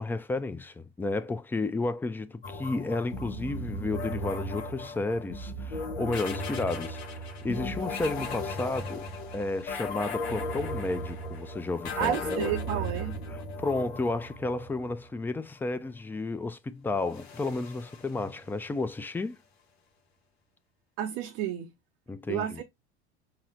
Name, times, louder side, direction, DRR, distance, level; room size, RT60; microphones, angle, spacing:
voice 1, 0.0-9.0 9.3-12.5 13.3-19.4 22.1-22.6, left 3 dB, 5° left, 0.4 m, -32 dB
sound 1, 2.4-15.0 17.0-18.7, left 1 dB, 75° left, 0.9 m, -36 dB
voice 2, 12.0-13.2 21.0-21.7 22.3-22.6, right 11 dB, 60° right, 0.6 m, -31 dB
5.8 x 2.0 x 2.9 m
hypercardioid pair, 75°, 31 cm